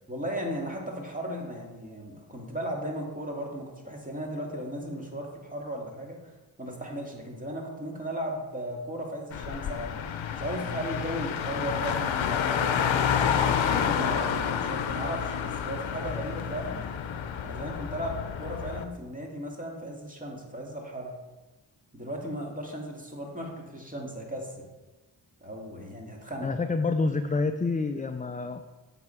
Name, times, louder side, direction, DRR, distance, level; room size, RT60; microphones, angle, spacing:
voice 1, 0.1-6.2 6.6-10.0 10.3-13.1 13.4-16.9 17.4-21.2 21.9-24.5 25.4-26.5, equal, 15° right, -1 dB, 2.1 m, -36 dB
Car, 9.3-18.8, left 8 dB, 75° left, 0.7 m, -29 dB
voice 2, 26.4-28.6, left 3 dB, 20° left, 7 dB, 0.4 m, -28 dB
8.0 x 5.9 x 4.5 m, 1.2 s
cardioid pair, 55°, 47 cm